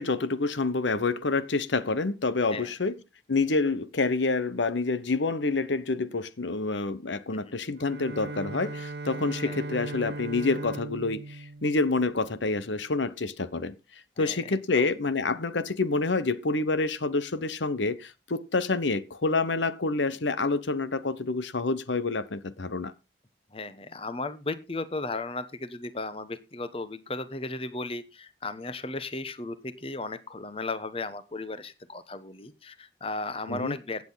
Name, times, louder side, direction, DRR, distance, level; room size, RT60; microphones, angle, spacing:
voice 1, 0.0-3.0 3.3-13.7 14.2-22.9 33.5-33.8, left 3 dB, 85° left, 1.0 m, -28 dB
Bowed string instrument, 7.8-12.7, right 2 dB, 65° right, 0.7 m, -38 dB
voice 2, 14.2-14.9 23.5-34.0, left 2 dB, 30° left, 1.0 m, -35 dB
16.0 x 8.6 x 4.0 m
head